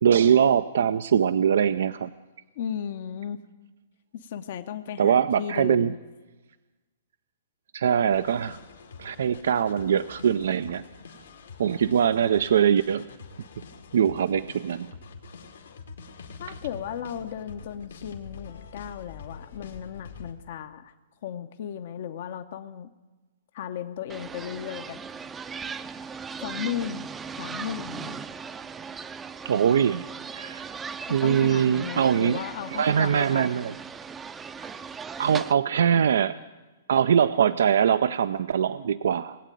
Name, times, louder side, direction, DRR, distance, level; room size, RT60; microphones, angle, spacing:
voice 1, 0.0-2.1 5.0-5.9 7.7-8.6 9.0-10.8 11.6-13.0 13.9-14.9 29.5-30.0 30.4-30.7 31.1-32.4 32.7-33.7 35.2-36.4 36.9-39.4, right 8 dB, 75° right, 13 dB, 0.4 m, -22 dB
voice 2, 2.6-3.4 4.1-6.0 16.4-20.9 21.2-22.9 23.5-25.0 26.4-27.1 27.4-28.2 31.0-33.5, left 9 dB, 60° left, 8 dB, 0.7 m, -35 dB
sound 1, 8.1-20.3, left 5 dB, 85° left, 2.0 m, -46 dB
sound 2, 24.1-35.5, right 6 dB, 15° right, 0.5 m, -38 dB
19.5 x 8.2 x 9.1 m, 1.2 s
hypercardioid pair, 135°, 0 cm